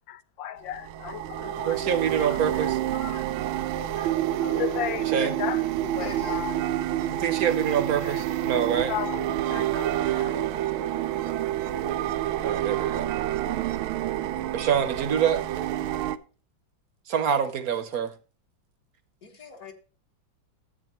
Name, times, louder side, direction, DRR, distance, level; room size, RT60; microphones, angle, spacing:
voice 1, 0.1-7.4 7.9-9.7, left 11 dB, 75° left, 1.3 m, -36 dB
sound 1, 0.7-16.2, right 13 dB, 90° right, 1.5 m, -28 dB
voice 2, 1.7-2.8 5.1-5.3 7.1-8.9 12.4-13.1 14.5-15.6 17.1-18.1, right 8 dB, 55° right, 1.1 m, -26 dB
voice 3, 6.0-6.4 9.7-10.3 19.2-19.7, left 5 dB, 45° left, 2.0 m, -42 dB
13.0 x 8.3 x 3.0 m
omnidirectional pair, 2.2 m